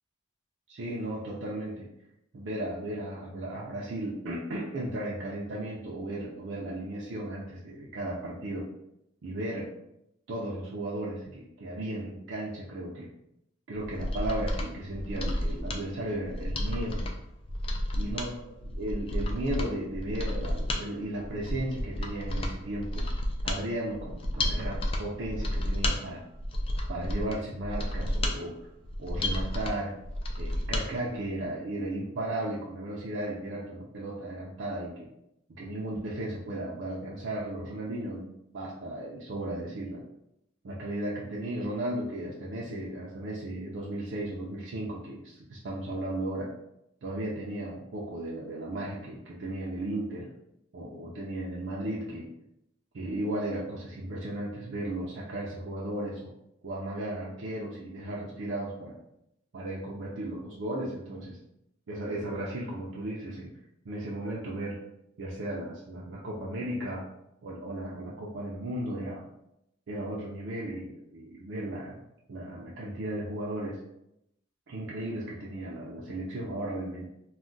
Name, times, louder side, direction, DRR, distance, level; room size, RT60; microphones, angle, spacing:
voice 1, 0.7-1.9 2.3-8.7 9.2-9.7 10.3-13.1 13.7-17.0 18.0-18.3 18.7-23.1 23.4-26.2 26.9-28.6 29.0-29.9 30.4-35.1 35.5-40.0 40.6-46.5 47.0-50.3 50.7-52.3 52.9-56.3 56.6-59.0 59.5-61.4 61.9-63.5 63.8-64.8 65.2-67.0 67.4-69.2 69.9-72.0 72.3-73.8 74.7-77.1, right 1 dB, 65° right, -5 dB, 0.5 m, -35 dB
Mechanisms, 13.8-30.9 31.2-31.3, left 1 dB, 30° left, 0.3 m, -32 dB
2.3 x 2.1 x 3.8 m, 0.82 s
head